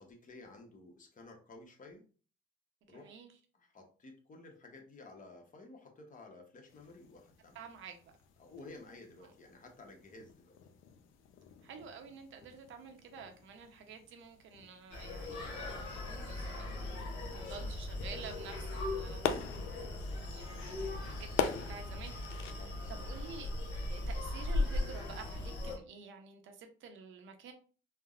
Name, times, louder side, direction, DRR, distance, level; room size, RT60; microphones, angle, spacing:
voice 1, 0.0-2.0 2.9-3.1 3.5-7.6 8.4-10.6 17.3-17.7 22.5-23.0, left 2 dB, 40° left, 2 dB, 0.9 m, -54 dB
voice 2, 2.9-3.3 7.5-8.1 11.6-16.9 17.3-19.6 20.3-22.2 22.5-23.5 23.9-27.5, right 6 dB, 75° right, 5 dB, 0.6 m, -50 dB
sound 1, 6.7-22.5, left 7 dB, 85° left, 0.4 m, -44 dB
Screaming, 14.9-25.8, left 2 dB, 70° left, 0.9 m, -38 dB
3.3 x 2.0 x 2.3 m, 0.38 s
cardioid pair, 90°, 20 cm